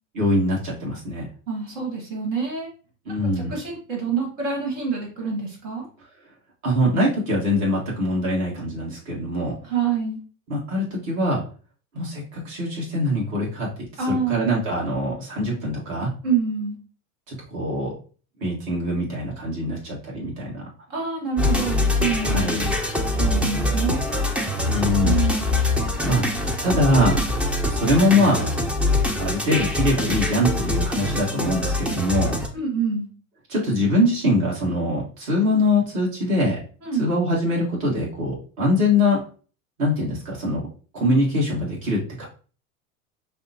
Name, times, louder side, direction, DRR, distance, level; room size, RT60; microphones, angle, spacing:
voice 1, 0.1-1.3 3.0-3.5 6.6-9.6 10.5-11.4 11.9-13.7 14.0-16.1 17.3-17.9 18.4-20.6 22.3-22.7 24.6-25.2 26.0-26.2 26.6-27.2 27.7-28.4 29.2-32.3 33.5-36.6 37.0-39.2 39.8-40.7 40.9-42.3, left 1 dB, 40° right, -4 dB, 1.7 m, -23 dB
voice 2, 1.5-2.7 3.3-5.9 9.6-10.2 14.0-14.5 16.2-16.8 20.9-22.8 23.2-24.2 25.0-25.5 32.5-33.1 36.8-37.1, right 5 dB, 60° right, 0 dB, 1.8 m, -27 dB
sound 1, 21.4-32.5, left 2 dB, 5° right, 0.3 m, -24 dB
5.8 x 2.3 x 2.8 m, 0.39 s
hypercardioid pair, 90°, 42 cm